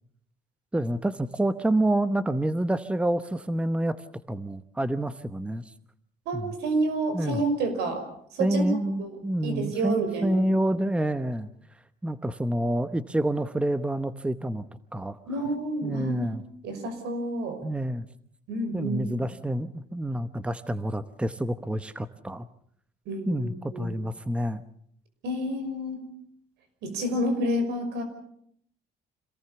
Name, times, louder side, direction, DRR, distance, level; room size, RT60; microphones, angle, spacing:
voice 1, 0.7-4.0 4.3-5.6 6.3-6.5 7.1-7.4 8.4-11.5 12.0-14.6 14.9-15.2 15.8-16.4 17.6-18.1 18.7-22.5 23.3-24.6, right 1 dB, 5° right, 12 dB, 0.9 m, -28 dB
voice 2, 6.3-8.0 8.3-8.6 9.0-9.1 9.4-10.4 15.3-16.3 16.6-17.6 18.5-19.2 23.1-23.9 25.2-26.0 26.8-28.0, right 1 dB, 85° right, 8 dB, 5.8 m, -29 dB
26.5 x 18.5 x 7.0 m, 0.68 s
cardioid pair, 110°, 17 cm